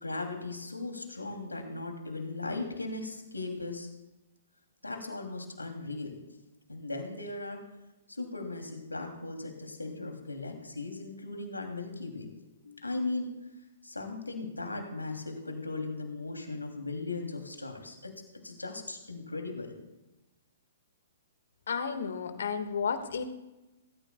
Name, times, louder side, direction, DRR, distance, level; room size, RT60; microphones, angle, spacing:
voice 1, 0.0-3.9 4.8-6.2 6.7-7.6 8.1-12.3 12.6-13.3 13.8-18.1 18.4-19.7, left 3 dB, 90° left, 3 dB, 2.7 m, -37 dB
voice 2, 21.7-23.2, left 6 dB, 65° left, 9 dB, 1.6 m, -32 dB
24.0 x 14.0 x 2.3 m, 1.0 s
figure-of-eight pair, 120°, 0 cm